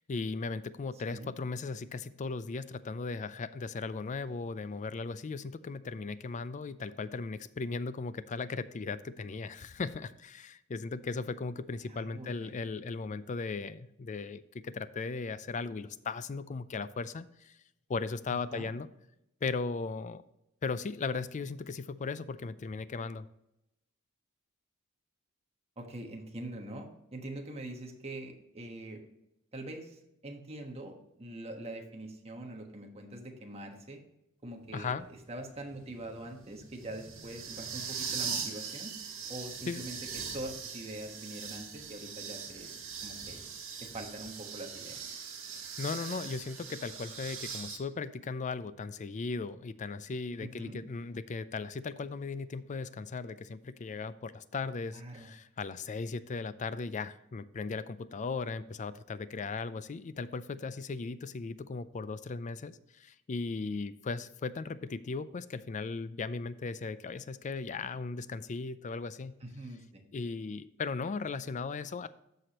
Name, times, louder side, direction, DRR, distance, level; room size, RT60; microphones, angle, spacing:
voice 1, 0.1-17.5 17.9-18.9 19.4-20.2 20.6-23.3 34.7-35.1 39.7-39.8 45.8-69.4 70.1-72.1, left 4 dB, 35° left, 14 dB, 0.4 m, -37 dB
voice 2, 11.8-12.5 18.3-18.7 25.8-29.0 29.5-34.0 34.4-35.0 35.3-38.9 39.3-42.8 43.0-43.4 43.8-45.1 50.4-50.8 54.9-55.3 69.4-70.0, right 1 dB, 30° right, 2 dB, 1.3 m, -44 dB
sound 1, 34.6-47.8, right 6 dB, 65° right, 1.8 m, -41 dB
13.5 x 4.9 x 2.9 m, 0.85 s
head